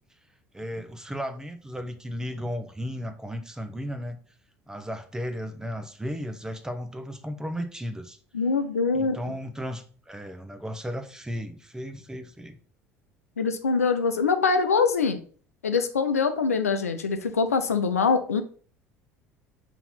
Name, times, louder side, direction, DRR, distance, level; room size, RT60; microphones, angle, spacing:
voice 1, 0.5-4.2 4.7-8.2 8.9-12.6, equal, 10° right, 8 dB, 0.9 m, -35 dB
voice 2, 8.3-9.2 13.4-15.2 15.6-18.4, left 5 dB, 85° left, 8 dB, 0.6 m, -24 dB
5.7 x 3.0 x 5.5 m, 0.43 s
hypercardioid pair, 65°, 8 cm